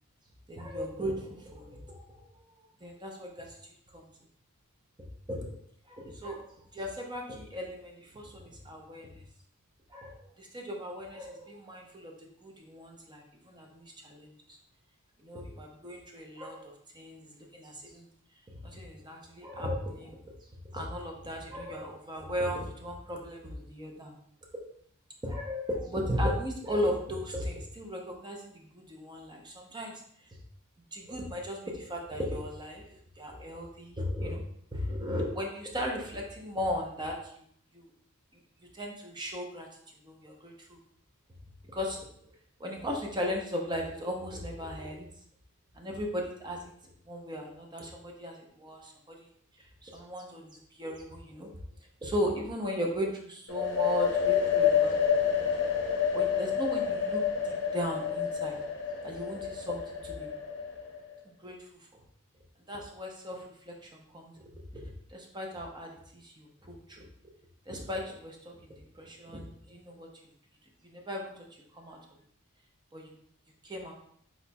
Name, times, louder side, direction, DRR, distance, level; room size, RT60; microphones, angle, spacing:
voice 1, 0.5-2.3 2.8-3.6 3.9-4.1 5.3-5.4 5.9-9.2 9.9-14.6 15.2-18.1 18.5-20.3 20.7-24.1 25.2-30.0 30.9-34.4 34.7-37.4 37.7-37.9 38.7-39.7 40.0-40.8 41.7-42.0 42.6-45.1 45.7-49.3 49.6-51.5 52.0-55.0 55.3-55.5 56.1-58.6 59.0-60.3 61.2-62.0 62.7-67.1 67.7-70.1 70.8-71.5 71.7-72.0 72.9-73.1 73.6-73.9, equal, 20° right, 0 dB, 0.6 m, -37 dB
sound 1, 53.5-61.1, left 7 dB, 55° left, 0.7 m, -29 dB
4.3 x 4.2 x 2.2 m, 0.65 s
head